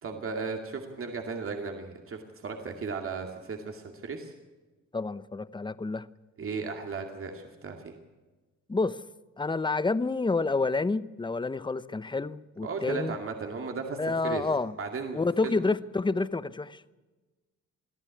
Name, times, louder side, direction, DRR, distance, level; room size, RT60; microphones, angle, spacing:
voice 1, 0.0-4.3 6.4-8.0 12.6-14.4 14.8-15.6, right 4 dB, 45° right, 2.5 m, -36 dB
voice 2, 4.9-6.1 8.7-9.0 9.4-13.1 14.0-14.7 15.1-16.8, left 3 dB, 15° left, 0.8 m, -29 dB
23.0 x 13.5 x 8.4 m
cardioid pair, 90°, 30 cm